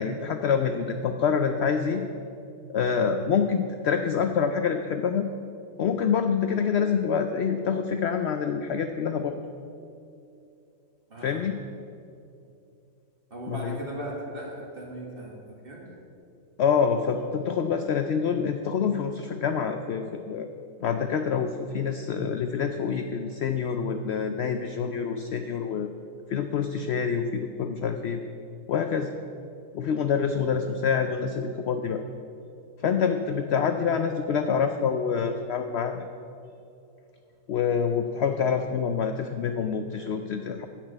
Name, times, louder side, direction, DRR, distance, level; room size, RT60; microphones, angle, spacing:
voice 1, 0.0-2.0 2.7-5.3 5.8-9.4 11.2-11.5 13.5-13.8 16.6-20.5 20.8-25.9 26.3-28.2 28.7-29.1 29.7-32.0 32.8-36.0 37.5-40.7, left 6 dB, 70° left, 7 dB, 0.6 m, -26 dB
voice 2, 13.3-15.8 30.3-30.5, right 1 dB, 35° right, -2 dB, 2.0 m, -38 dB
10.0 x 6.1 x 8.1 m, 2.6 s
omnidirectional pair, 1.6 m